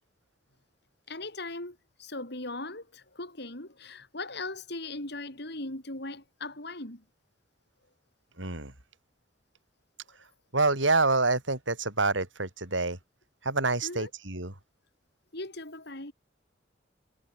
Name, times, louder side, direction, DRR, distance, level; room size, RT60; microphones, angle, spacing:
voice 1, 1.1-7.0 13.8-14.1 15.3-16.1, left 2 dB, 60° left, 6.7 m, -39 dB
voice 2, 8.4-8.7 10.5-13.0 13.4-14.5, right 3 dB, 85° right, 6.5 m, -27 dB
head